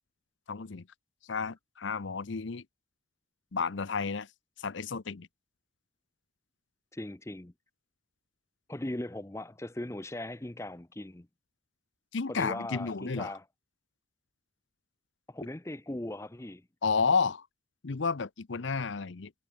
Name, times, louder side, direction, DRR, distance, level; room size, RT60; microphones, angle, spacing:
voice 1, 0.5-0.9 1.2-2.7 3.5-4.3 4.6-5.3 12.1-13.3 16.8-17.5 17.8-19.3, left 5 dB, 70° left, 0.7 m, -31 dB
voice 2, 6.9-7.5 8.7-11.3 12.3-13.4 15.3-16.7, left 1 dB, 15° left, 0.6 m, -39 dB
head